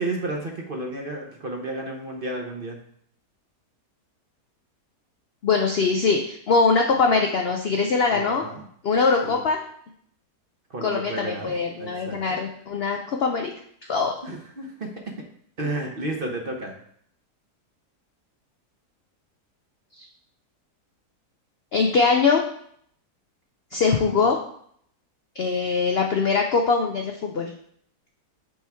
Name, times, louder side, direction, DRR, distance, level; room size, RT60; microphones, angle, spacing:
voice 1, 0.0-2.8 8.1-8.7 9.2-9.4 10.7-11.5 11.8-12.4 14.2-15.1 15.6-16.7 24.0-24.3, right 2 dB, 45° right, 2 dB, 0.8 m, -32 dB
voice 2, 5.4-8.4 8.8-9.6 10.8-13.5 13.9-14.1 21.7-22.4 23.7-24.4 25.4-27.5, left 4 dB, 85° left, 3 dB, 0.5 m, -22 dB
7.5 x 4.4 x 3.5 m, 0.66 s
omnidirectional pair, 1.7 m